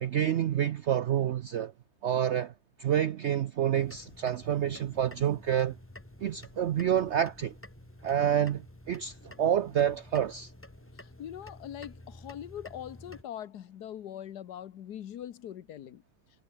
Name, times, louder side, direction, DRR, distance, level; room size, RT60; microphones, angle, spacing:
voice 1, 0.0-1.7 2.0-2.5 2.8-5.7 6.2-7.5 8.0-10.5, right 10 dB, 70° right, 0.6 m, -28 dB
sound 1, 3.7-13.2, left 1 dB, 10° left, 1.1 m, -50 dB
voice 2, 11.0-16.0, left 10 dB, 75° left, 1.5 m, -42 dB
omnidirectional pair, 1.8 m